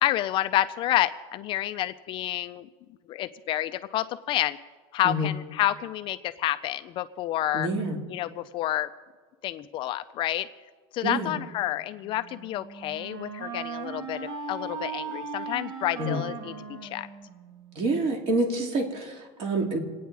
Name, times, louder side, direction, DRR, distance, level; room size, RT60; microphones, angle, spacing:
voice 1, 0.0-2.7 3.1-4.6 4.9-7.7 8.1-8.9 9.4-10.5 10.9-16.5 16.8-17.1, left 13 dB, 35° left, 11 dB, 0.5 m, -29 dB
voice 2, 7.5-8.0 11.0-11.3 16.0-16.2 17.7-19.8, right 2 dB, 40° right, 2 dB, 2.9 m, -27 dB
Wind instrument woodwind instrument, 12.0-17.8, right 5 dB, 60° right, 2.8 m, -38 dB
27.0 x 9.3 x 4.7 m, 1.4 s
supercardioid pair, 155°, 14 cm